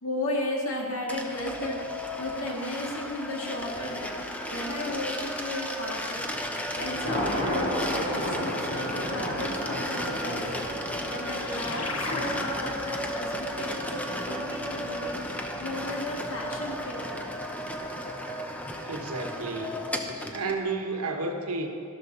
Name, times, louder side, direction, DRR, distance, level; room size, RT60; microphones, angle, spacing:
voice 1, 0.0-4.1 4.4-17.3, left 1 dB, 65° left, -1 dB, 2.0 m, -35 dB
sound 1, 1.1-20.6, equal, 5° left, 0.7 m, -34 dB
Thunder, 6.2-17.5, left 1 dB, 35° left, 2.8 m, -35 dB
sound 2, 10.7-15.6, left 3 dB, 80° left, 1.2 m, -39 dB
voice 2, 18.8-19.8 20.3-21.7, right 3 dB, 80° right, 4 dB, 1.3 m, -31 dB
13.0 x 12.5 x 4.0 m, 2.4 s
head